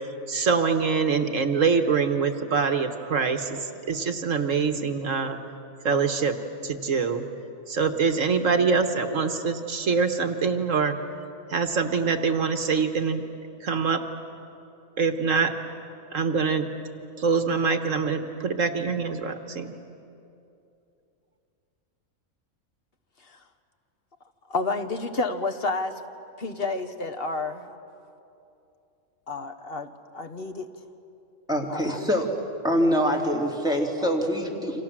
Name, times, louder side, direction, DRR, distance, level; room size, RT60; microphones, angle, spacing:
voice 1, 0.3-3.6 3.9-5.4 5.9-6.3 6.6-7.2 7.7-10.9 11.5-13.2 13.6-14.0 15.0-15.5 16.1-16.7 17.2-19.7, right 5 dB, 65° right, 1.7 m, -24 dB
voice 2, 24.5-26.0 26.4-27.7 29.3-30.7 31.7-32.0 34.0-34.1, left 3 dB, 45° left, 1.5 m, -30 dB
voice 3, 31.5-32.3 32.6-34.8, equal, 5° right, 2.9 m, -24 dB
29.0 x 26.0 x 7.5 m
omnidirectional pair, 1.4 m